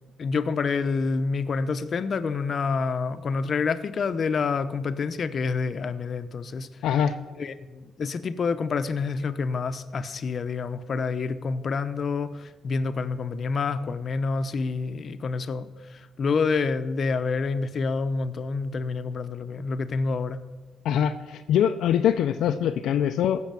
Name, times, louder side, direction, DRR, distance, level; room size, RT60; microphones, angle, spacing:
voice 1, 0.2-6.7 7.4-15.7 16.2-20.4, left 4 dB, 50° left, 10 dB, 0.8 m, -28 dB
voice 2, 6.8-7.1 20.8-23.4, left 9 dB, 80° left, 6 dB, 0.6 m, -23 dB
15.5 x 6.3 x 7.6 m, 1.2 s
cardioid pair, 90°, 0 cm